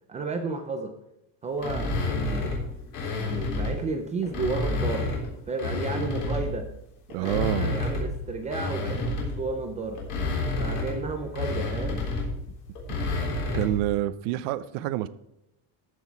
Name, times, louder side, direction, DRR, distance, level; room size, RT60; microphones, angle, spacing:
voice 1, 0.1-0.9 1.4-2.6 3.1-5.1 5.5-6.7 7.2-10.0 10.6-12.0, right 3 dB, 15° right, 5 dB, 0.3 m, -32 dB
sound 1, 1.6-3.8 4.2-6.6 7.1-13.9, left 2 dB, 45° left, 3.7 m, -30 dB
voice 2, 7.1-7.8 13.5-15.1, right 14 dB, 60° right, 14 dB, 0.7 m, -27 dB
14.0 x 6.3 x 4.6 m, 0.84 s
cardioid pair, 175°, 49 cm